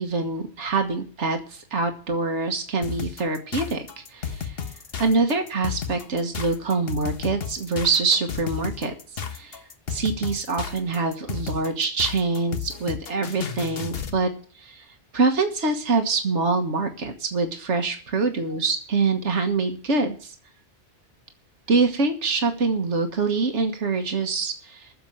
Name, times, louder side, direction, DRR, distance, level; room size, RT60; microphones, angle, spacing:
voice 1, 0.0-4.6 5.0-8.9 9.3-9.6 9.9-14.3 14.6-14.9 15.1-20.4 21.7-24.9, right 4 dB, 80° right, 5 dB, 1.7 m, -25 dB
sound 1, 2.8-14.2, left 7 dB, 60° left, 1.3 m, -33 dB
11.0 x 7.1 x 8.7 m, 0.43 s
omnidirectional pair, 1.2 m